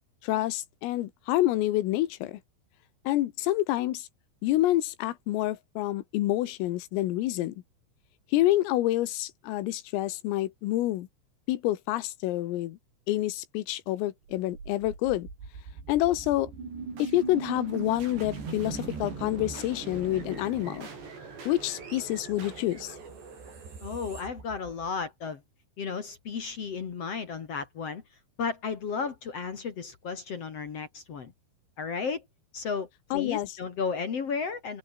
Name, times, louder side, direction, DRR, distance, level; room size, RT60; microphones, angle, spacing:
voice 1, 0.2-2.4 3.1-4.1 4.4-7.6 8.3-11.1 11.5-12.8 13.1-15.3 15.9-16.5 17.0-20.9 21.5-23.0 33.1-33.5, left 15 dB, 85° left, 4.1 m, -28 dB
sound 1, 14.3-25.3, right 4 dB, 55° right, 9.4 m, -40 dB
voice 2, 23.8-25.4 25.8-28.0 28.4-31.3 31.8-32.3 32.5-34.8, left 5 dB, 50° left, 1.9 m, -33 dB
omnidirectional pair, 5.9 m